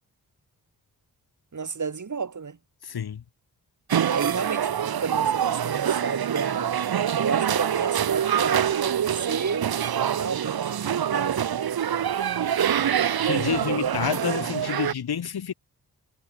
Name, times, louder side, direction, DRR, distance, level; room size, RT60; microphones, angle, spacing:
voice 1, 1.5-2.6 4.1-6.7 7.2-9.7 10.1-11.9 13.1-13.8, right 5 dB, 45° right, 7.3 m, -32 dB
voice 2, 2.8-3.2 13.2-15.5, left 8 dB, 70° left, 2.3 m, -29 dB
sound 1, 3.9-14.9, right 9 dB, 65° right, 1.1 m, -25 dB
wide cardioid pair, 135°, 39 cm